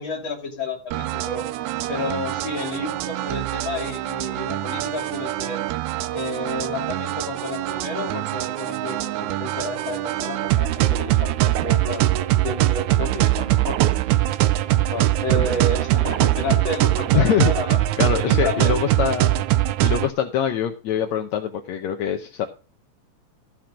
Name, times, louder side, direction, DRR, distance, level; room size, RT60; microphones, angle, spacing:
voice 1, 0.0-1.4 1.9-5.6 6.1-14.0 14.6-17.8 18.2-18.8, left 2 dB, 35° left, 1 dB, 3.4 m, -31 dB
sound 1, 0.9-20.1, right 15 dB, 85° right, 1.6 m, -22 dB
voice 2, 17.1-17.5 18.0-19.4 19.8-22.5, left 9 dB, 70° left, 5 dB, 1.8 m, -24 dB
13.5 x 6.0 x 5.0 m, 0.35 s
omnidirectional pair, 4.0 m